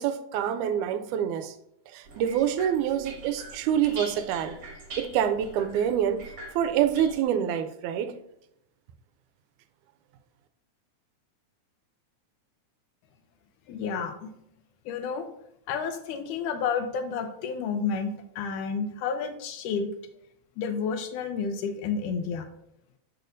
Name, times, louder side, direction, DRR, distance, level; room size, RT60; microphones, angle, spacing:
voice 1, 0.0-1.6 1.9-4.6 5.0-6.2 6.6-8.1, right 9 dB, 85° right, 9 dB, 2.0 m, -26 dB
sound 1, 2.1-7.2, right 2 dB, 50° right, 2.0 m, -44 dB
voice 2, 13.7-14.3 14.9-15.3 15.7-19.9 20.6-22.5, left 5 dB, 85° left, 7 dB, 2.2 m, -30 dB
6.6 x 6.3 x 2.6 m, 0.78 s
omnidirectional pair, 3.5 m